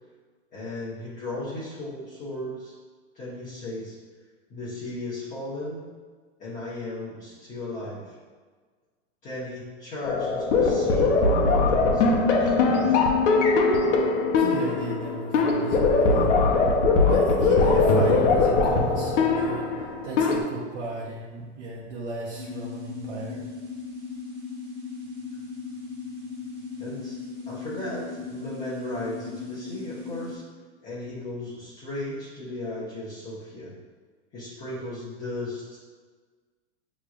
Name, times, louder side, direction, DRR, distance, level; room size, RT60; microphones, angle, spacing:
voice 1, 0.5-2.7 3.1-4.0 4.5-5.8 6.4-8.2 9.2-13.1 26.8-27.2 27.5-30.4 30.8-33.7 34.3-35.8, left 1 dB, 25° left, -10 dB, 1.1 m, -36 dB
sound 1, 10.0-20.4, left 3 dB, 75° left, 0.8 m, -21 dB
voice 2, 14.3-16.4 17.1-19.7 20.0-23.5, right 3 dB, 70° right, -6 dB, 0.9 m, -34 dB
sound 2, 22.3-30.4, left 5 dB, 50° right, 1.4 m, -37 dB
6.6 x 3.1 x 2.4 m, 1.5 s
supercardioid pair, 145°, 35 cm